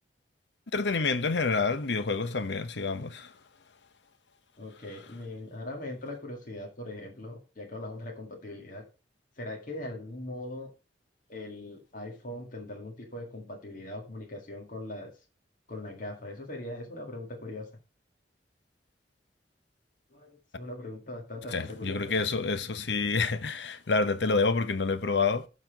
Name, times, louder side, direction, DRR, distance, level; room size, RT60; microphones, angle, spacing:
voice 1, 0.7-3.3 21.5-25.5, left 4 dB, 70° left, 0.8 m, -28 dB
voice 2, 4.6-8.8 9.4-10.7 11.3-15.1 15.7-17.7 20.1-22.0, left 1 dB, 50° left, 1.9 m, -40 dB
12.0 x 4.2 x 5.2 m
head